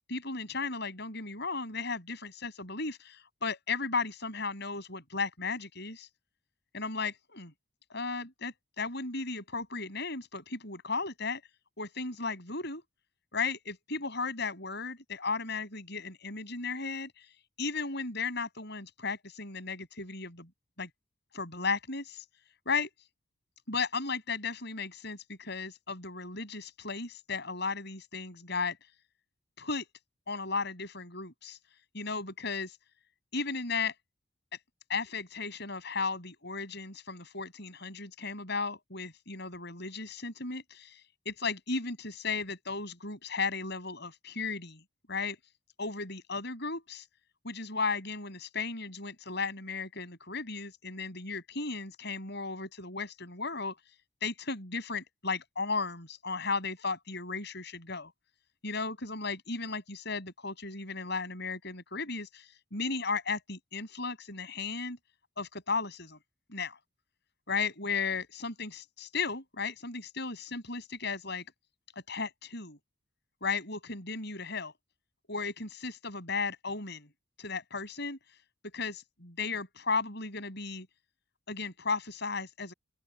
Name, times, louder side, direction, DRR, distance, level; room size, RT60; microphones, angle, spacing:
voice 1, 0.1-6.1 6.7-7.5 7.9-11.4 11.8-12.8 13.3-17.1 17.6-20.5 20.8-20.9 21.3-22.2 22.7-22.9 23.7-28.8 29.6-29.9 30.3-31.6 31.9-32.8 33.3-33.9 34.9-41.0 41.2-44.8 45.1-45.4 45.8-47.0 47.4-53.7 54.2-58.1 58.6-62.5 62.7-65.0 65.4-66.2 66.5-66.8 67.5-71.4 72.1-72.8 73.4-74.7 75.3-77.1 77.4-78.2 78.7-80.9 81.5-82.7, left 4 dB, 55° left, 7.7 m, -35 dB
open air
head